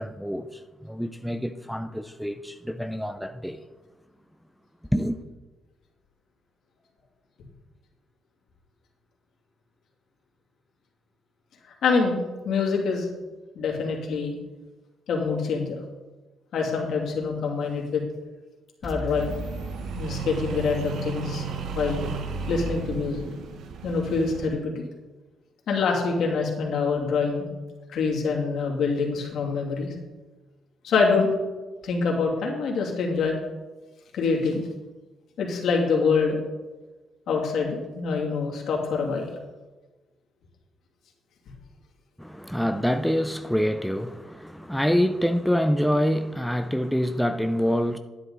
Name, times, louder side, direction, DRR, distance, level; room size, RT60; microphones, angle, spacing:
voice 1, 0.0-3.6 4.9-5.2 42.2-48.0, equal, ahead, 0.5 m, -26 dB
voice 2, 11.8-13.1 13.5-14.3 15.1-15.8 16.5-18.0 18.8-19.4 20.0-21.5 21.7-22.0 22.5-23.2 23.8-24.7 25.7-27.5 27.9-29.9 30.8-31.3 31.8-33.4 34.1-34.6 35.4-36.4 37.3-39.2, left 4 dB, 70° left, 2.7 m, -25 dB
sound 1, 18.8-20.9, equal, 20° left, 1.7 m, -39 dB
sound 2, 19.1-24.5, right 5 dB, 75° right, 1.1 m, -34 dB
11.0 x 9.8 x 4.0 m
cardioid pair, 90°, 0 cm